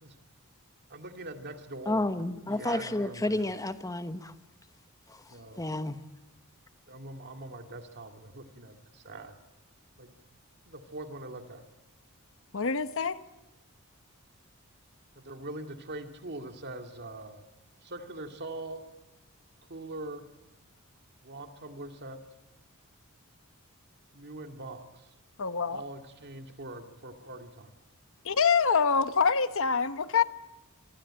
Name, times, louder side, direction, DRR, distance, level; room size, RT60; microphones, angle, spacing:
voice 1, 0.9-2.1 2.5-3.6 5.3-5.6 6.9-9.4 10.0-10.2 10.7-11.7 15.2-17.4 17.8-18.9 19.7-20.2 21.2-22.2 24.1-25.1 25.7-27.7, right 2 dB, 50° right, 5 dB, 2.4 m, -42 dB
voice 2, 1.9-4.3 5.1-6.0, left 1 dB, 15° left, 10 dB, 1.1 m, -31 dB
voice 3, 12.5-13.2 25.4-25.8 28.2-30.2, left 5 dB, 65° left, 12 dB, 1.0 m, -25 dB
25.5 x 24.5 x 8.9 m, 0.98 s
head